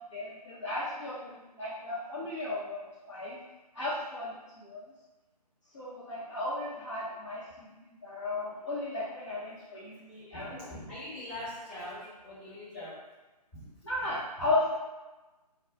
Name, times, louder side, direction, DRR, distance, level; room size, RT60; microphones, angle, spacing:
voice 1, 0.1-2.8 3.1-3.4 3.7-4.8 5.7-10.6 11.1-11.2 12.7-12.9 13.8-14.8, left 2 dB, 45° left, -9 dB, 0.8 m, -35 dB
voice 2, 10.3-13.0 13.5-13.7, left 1 dB, 15° left, -12 dB, 1.0 m, -42 dB
2.3 x 2.3 x 3.7 m, 1.1 s
figure-of-eight pair, 145°, 21 cm